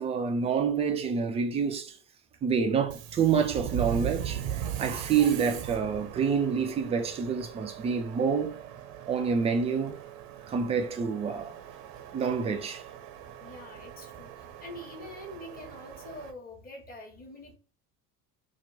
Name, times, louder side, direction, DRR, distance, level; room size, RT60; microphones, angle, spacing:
voice 1, 0.0-2.0 2.4-8.6 9.1-10.0 10.5-11.6 12.1-12.8, right 6 dB, 15° right, 0.3 m, -27 dB
Subway metro underground, 2.8-16.3, right 11 dB, 45° right, 0.7 m, -39 dB
voice 2, 13.4-14.3 14.6-17.6, left 1 dB, 20° left, 1.2 m, -45 dB
2.9 x 2.5 x 3.8 m
figure-of-eight pair, 65°, 48 cm